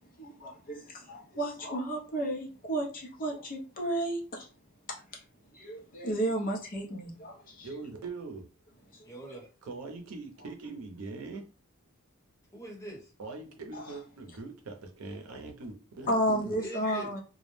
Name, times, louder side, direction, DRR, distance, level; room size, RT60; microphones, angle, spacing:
voice 1, 0.2-4.5 4.9-5.2 5.5-7.8 8.9-9.1 13.7-13.9 16.1-17.2, right 1 dB, 40° left, 0.7 m, -33 dB
voice 2, 7.6-8.4 9.6-11.5 13.2-16.5, right 3 dB, 80° right, 0.6 m, -42 dB
voice 3, 9.0-9.5 12.5-13.1 16.0-17.1, right 1 dB, 15° left, 1.0 m, -43 dB
2.3 x 2.0 x 3.1 m
head